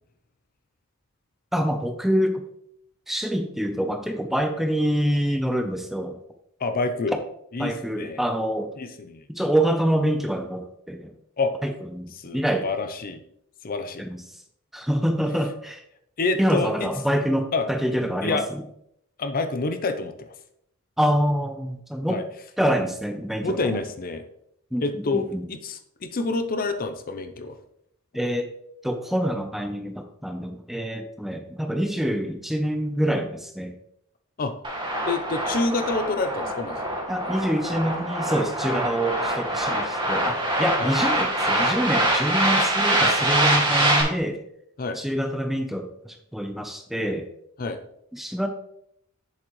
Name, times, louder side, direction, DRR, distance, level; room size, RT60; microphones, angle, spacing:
voice 1, 1.5-2.4 3.1-6.2 7.6-8.7 9.3-11.1 11.6-12.7 14.0-14.2 14.7-15.8 16.4-18.4 21.0-22.2 22.6-23.8 24.7-25.4 28.1-28.5 28.8-33.7 37.1-44.4 45.0-47.3 48.1-48.5, equal, ahead, 5 dB, 0.6 m, -26 dB
voice 2, 6.6-7.2 7.5-8.2 8.8-9.3 11.4-11.5 12.2-13.2 13.6-14.0 16.2-16.9 17.5-17.7 18.2-18.5 19.2-20.3 22.1-22.2 23.4-24.2 24.8-27.6 34.4-34.5 35.0-36.9 40.8-40.9 44.8-45.0 47.6-47.8, left 3 dB, 40° left, 8 dB, 0.6 m, -27 dB
sound 1, 34.6-44.0, right 1 dB, 20° right, 1.9 m, -24 dB
7.6 x 7.2 x 3.1 m, 0.73 s
head